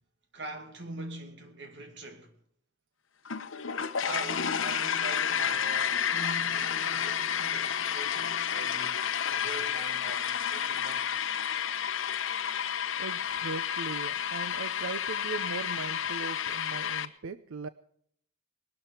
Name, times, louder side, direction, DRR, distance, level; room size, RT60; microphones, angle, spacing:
voice 1, 0.3-2.4 4.0-11.3, right 2 dB, 60° right, 2.2 m, -43 dB
sound 1, 3.3-17.1, left 8 dB, 75° left, 1.0 m, -31 dB
voice 2, 13.0-17.7, right 4 dB, 90° right, 0.6 m, -39 dB
20.5 x 12.5 x 4.4 m
head